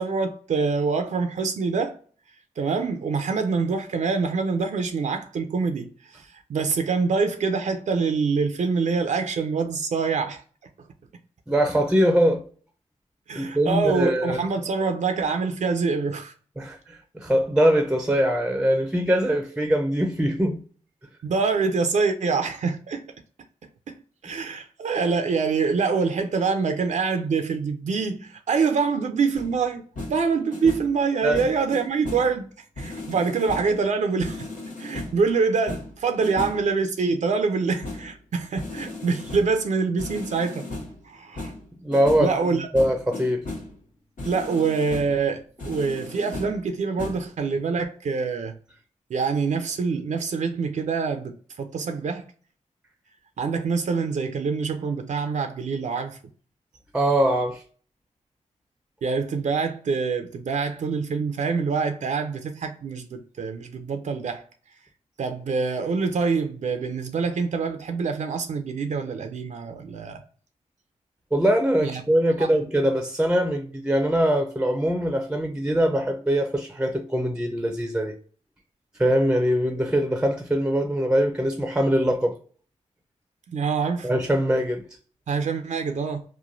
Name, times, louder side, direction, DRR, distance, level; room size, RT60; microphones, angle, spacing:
voice 1, 0.0-1.9 2.6-5.9 6.1-10.4 13.3-16.3 21.2-23.0 23.9-24.0 24.2-29.8 30.1-32.5 32.8-34.5 34.8-40.7 41.1-41.5 42.2-42.7 44.3-48.5 49.1-52.3 53.4-56.2 59.0-64.4 65.2-70.2 71.8-72.0 72.4-72.5 83.5-84.1 85.3-86.2, right 5 dB, 65° right, 0.5 m, -25 dB
voice 2, 11.5-12.4 13.4-14.4 16.6-20.6 31.2-31.4 41.8-42.3 42.7-43.5 56.9-57.6 71.3-78.1 79.0-82.4 84.0-84.8, equal, 5° right, 0.5 m, -22 dB
sound 1, 29.3-29.6 30.0-30.2 30.5-31.0 31.3-32.4 32.8-33.8 34.2-35.2 35.7-36.7 37.8-38.2 38.6-39.6 40.0-41.0 41.4-42.4 42.7-43.8 44.2-45.2 45.6-46.7 47.0-47.2, left 2 dB, 80° left, 1.3 m, -36 dB
3.0 x 2.2 x 2.4 m
cardioid pair, 50°, 13 cm